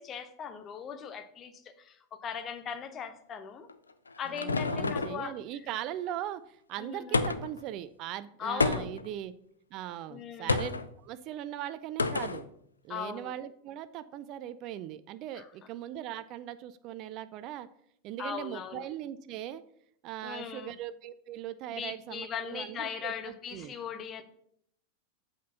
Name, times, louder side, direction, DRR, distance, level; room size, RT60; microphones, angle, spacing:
voice 1, 0.0-3.7 4.2-5.4 6.8-7.2 8.4-8.9 10.1-10.6 12.9-13.3 15.3-15.5 18.2-18.9 20.2-20.7 21.7-24.2, left 7 dB, 30° left, 10 dB, 0.8 m, -39 dB
sound 1, 3.7-5.3 7.1-7.6 8.6-9.1 10.5-10.9 12.0-12.4, left 3 dB, 75° left, 0.5 m, -29 dB
voice 2, 4.3-9.3 9.7-10.7 11.0-12.4 12.8-17.7 18.0-19.6 20.0-23.7, right 11 dB, 40° right, 14 dB, 0.4 m, -39 dB
8.2 x 4.4 x 5.7 m, 0.69 s
figure-of-eight pair, 90°, 0 cm